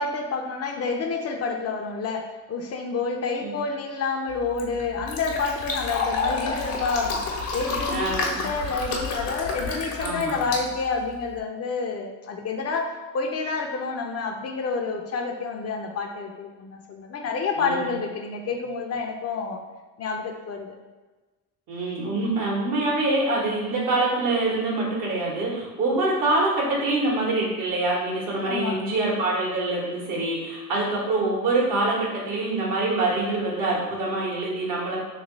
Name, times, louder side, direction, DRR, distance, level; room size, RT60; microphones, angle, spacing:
voice 1, 0.0-7.2 7.5-19.6 20.0-20.7 28.5-28.8, left 4 dB, 45° left, 3 dB, 0.5 m, -29 dB
Fill (with liquid), 4.3-11.4, left 3 dB, 85° left, 0.8 m, -30 dB
voice 2, 7.9-8.4 10.0-10.4 17.6-17.9 21.7-35.0, right 2 dB, 65° right, -3 dB, 1.4 m, -25 dB
3.1 x 2.9 x 3.9 m, 1.2 s
cardioid pair, 85°, 34 cm